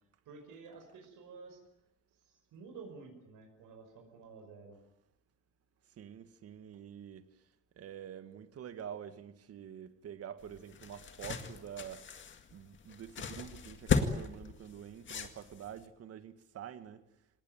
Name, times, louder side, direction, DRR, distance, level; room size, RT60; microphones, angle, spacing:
voice 1, 0.3-1.6 2.2-4.8, right 4 dB, 75° right, 5.6 m, -51 dB
voice 2, 5.8-7.5 7.8-17.0, right 9 dB, 45° right, 1.8 m, -47 dB
sound 1, 10.4-15.8, left 5 dB, 35° left, 2.1 m, -36 dB
27.0 x 19.0 x 9.2 m
cardioid pair, 175°, 32 cm